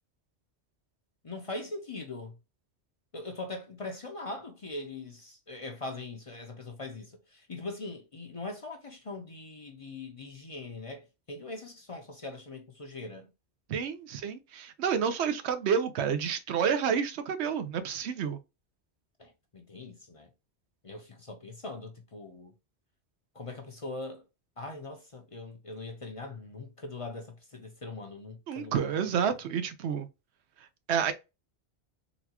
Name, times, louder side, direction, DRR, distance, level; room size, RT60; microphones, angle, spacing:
voice 1, 1.2-2.4 3.1-13.3 19.2-20.3 20.8-22.5 23.3-24.2 24.6-29.2, left 2 dB, 40° left, 0.6 m, -41 dB
voice 2, 13.7-18.4 28.5-30.1 30.9-31.1, right 7 dB, 85° right, 0.9 m, -29 dB
4.0 x 2.3 x 2.8 m
omnidirectional pair, 1.1 m